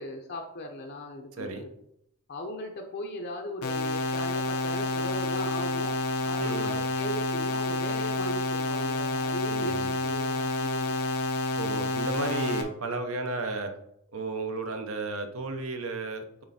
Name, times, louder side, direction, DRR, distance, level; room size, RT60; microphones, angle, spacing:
voice 1, 0.0-1.7 2.3-6.0 6.2-11.0 12.3-12.5, left 1 dB, 50° left, 3 dB, 0.7 m, -38 dB
sound 1, 3.6-12.6, left 2 dB, 85° left, 0.8 m, -29 dB
voice 2, 6.4-6.8 9.5-9.9 11.6-13.7 14.1-16.4, right 3 dB, 65° right, 6 dB, 0.8 m, -33 dB
7.8 x 3.2 x 4.2 m, 0.78 s
head